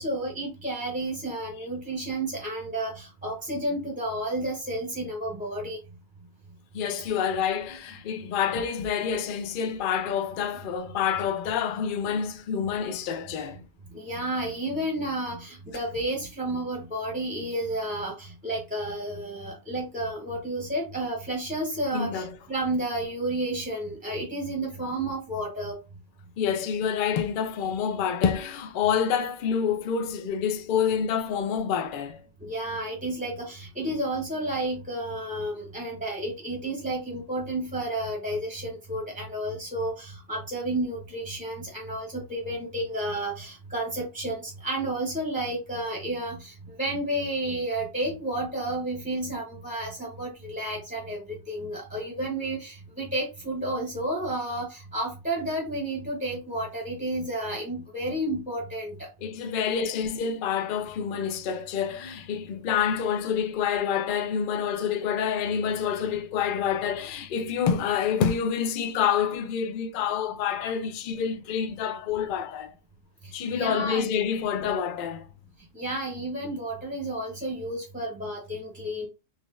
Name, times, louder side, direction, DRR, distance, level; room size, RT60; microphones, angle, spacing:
voice 1, 0.0-5.8 13.9-25.8 32.4-59.1 73.2-74.1 75.7-79.1, right 1 dB, 5° right, 0.8 m, -31 dB
voice 2, 6.7-13.6 21.9-22.4 24.6-24.7 26.4-32.2 59.2-72.7 73.3-75.3, left 7 dB, 60° left, 0.6 m, -27 dB
4.1 x 3.0 x 2.5 m
omnidirectional pair, 1.3 m